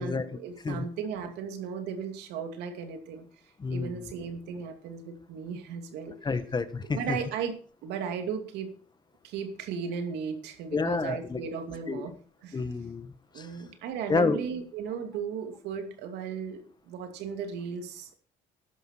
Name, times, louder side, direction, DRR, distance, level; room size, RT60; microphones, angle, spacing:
voice 1, 0.0-3.2 3.7-6.1 6.9-7.5 7.8-8.7 9.2-12.1 12.4-12.6 13.3-18.2, right 6 dB, 85° right, 6 dB, 2.5 m, -36 dB
voice 2, 3.6-4.1 6.2-7.2 10.7-11.4 11.9-12.1 12.5-13.6 14.1-14.4, left 4 dB, 25° left, 12 dB, 1.3 m, -29 dB
13.5 x 11.0 x 4.4 m, 0.41 s
cardioid pair, 110°, 17 cm